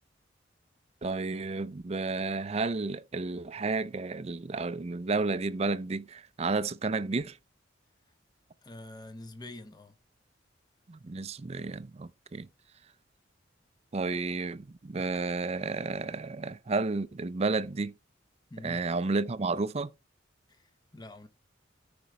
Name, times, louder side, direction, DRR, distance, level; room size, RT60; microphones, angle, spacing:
voice 1, 1.0-7.4 10.9-12.5 13.9-17.9 18.6-19.9, right 3 dB, 35° right, 0.5 m, -32 dB
voice 2, 8.6-9.9 18.5-18.8 20.5-21.3, left 1 dB, 20° left, 1.0 m, -46 dB
13.5 x 5.1 x 3.1 m
head